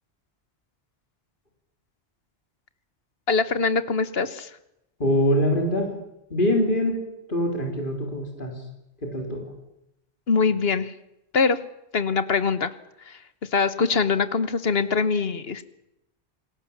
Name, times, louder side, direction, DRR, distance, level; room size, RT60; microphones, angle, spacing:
voice 1, 3.3-4.5 10.3-10.9 11.3-11.6 11.9-12.7 13.1-13.2 13.5-15.6, left 5 dB, 65° left, 13 dB, 1.4 m, -23 dB
voice 2, 5.0-5.9 6.3-7.0 7.3-8.5 9.0-9.4, left 1 dB, 50° left, 2 dB, 3.9 m, -23 dB
28.0 x 19.0 x 7.2 m, 0.85 s
omnidirectional pair, 1.1 m